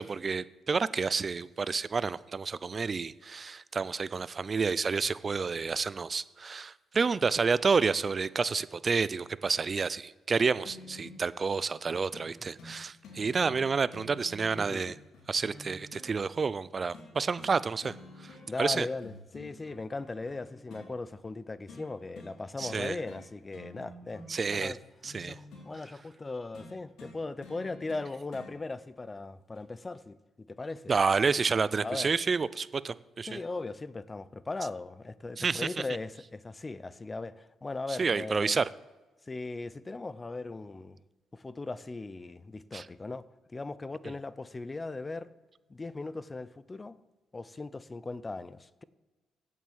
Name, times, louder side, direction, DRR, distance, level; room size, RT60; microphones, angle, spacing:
voice 1, 0.0-15.0 15.3-18.9 22.6-22.9 24.3-24.7 25.0-25.4 30.9-33.4 35.4-35.7 37.9-38.7 42.7-42.9 44.0-44.1, right 5 dB, 35° right, 0.4 m, -29 dB
sound 1, 10.6-11.3 12.1-12.3 12.6-12.8 13.0-16.1 16.9-17.6 17.8-18.7 19.0-20.9 21.7-21.9 22.1-22.3 22.6-23.2 23.5-25.7 26.5-28.5 29.5-29.6, left 2 dB, 75° left, 2.6 m, -49 dB
voice 2, 18.5-24.8 25.2-30.9 31.8-32.1 33.3-38.6 39.3-41.0 41.3-43.2 43.5-45.3 45.7-47.0 47.3-48.8, left 3 dB, 25° left, 0.5 m, -38 dB
8.1 x 7.4 x 7.2 m
cardioid pair, 90°, 0 cm